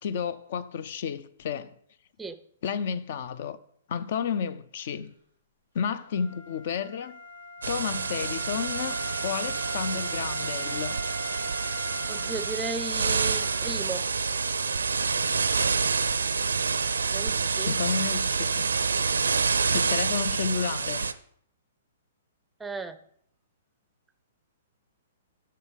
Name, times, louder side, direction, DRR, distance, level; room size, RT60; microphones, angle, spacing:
voice 1, 0.0-1.7 2.6-3.6 3.9-5.1 5.7-7.2 7.7-11.0 17.7-18.7 19.7-21.1, left 7 dB, 50° left, 0.5 m, -31 dB
Wind instrument woodwind instrument, 6.0-13.8, left 1 dB, 85° left, 2.6 m, -40 dB
sound 1, 7.6-21.1, right 5 dB, 75° right, 0.4 m, -28 dB
voice 2, 12.1-14.0 17.1-17.8 22.6-23.0, right 4 dB, 10° right, 0.5 m, -35 dB
6.8 x 6.8 x 5.1 m
figure-of-eight pair, 115°, 0 cm